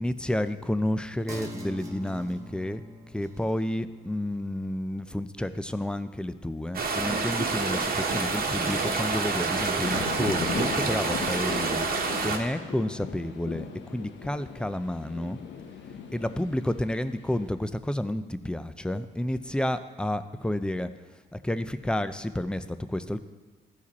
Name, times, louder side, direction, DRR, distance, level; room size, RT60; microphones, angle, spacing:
voice 1, 0.0-2.8 3.1-15.4 16.1-20.9 21.3-23.2, left 1 dB, 5° left, 12 dB, 0.4 m, -30 dB
sound 1, 1.3-8.3 8.7-8.8, equal, 15° right, 1.3 m, -46 dB
sound 2, 6.7-12.4, right 4 dB, 50° right, 1.2 m, -28 dB
sound 3, 7.3-17.5, left 6 dB, 65° left, 0.9 m, -40 dB
14.0 x 4.9 x 4.1 m, 1.3 s
cardioid pair, 90°, 20 cm